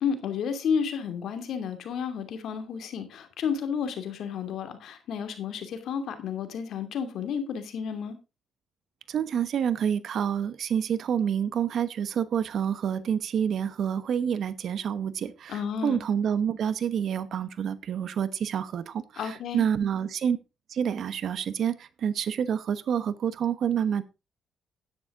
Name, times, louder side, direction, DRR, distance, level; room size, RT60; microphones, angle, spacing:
voice 1, 0.0-8.2 15.5-16.0 19.2-19.6, left 7 dB, 70° left, 2.7 m, -31 dB
voice 2, 9.1-20.4 20.7-24.0, right 8 dB, 65° right, 1.1 m, -28 dB
11.0 x 10.0 x 3.8 m
cardioid pair, 90°, 0 cm